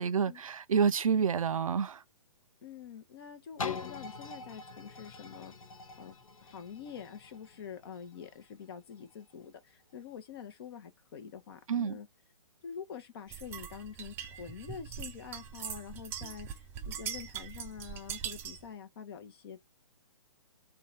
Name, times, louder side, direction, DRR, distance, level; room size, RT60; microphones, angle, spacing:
voice 1, 0.0-2.0 11.7-12.0, right 6 dB, 80° right, 0.5 m, -28 dB
voice 2, 2.6-5.5 6.0-6.1 6.4-12.1 12.6-19.6, left 7 dB, 45° left, 0.7 m, -46 dB
sound 1, 3.6-9.3 9.9-10.0, left 5 dB, 80° left, 0.8 m, -44 dB
sound 2, 13.3-18.7, right 8 dB, 15° right, 0.3 m, -42 dB
3.7 x 2.3 x 3.8 m
hypercardioid pair, 130°, 17 cm